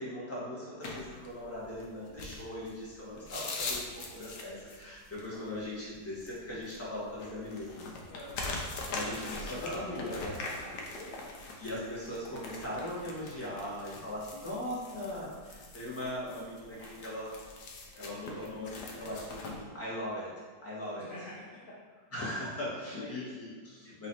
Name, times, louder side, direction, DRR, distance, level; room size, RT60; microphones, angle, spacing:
voice 1, 0.0-7.9 8.9-10.3 11.6-17.3 17.9-20.3 20.6-21.1 22.1-24.1, left 1 dB, 10° left, -8 dB, 1.1 m, -39 dB
sound 1, 0.8-19.6, left 3 dB, 65° left, 1.1 m, -42 dB
voice 2, 8.1-8.5 9.3-11.3 21.0-21.7 22.9-23.3, left 1 dB, 45° left, -8 dB, 0.7 m, -48 dB
4.2 x 3.0 x 4.2 m, 1.5 s
omnidirectional pair, 2.0 m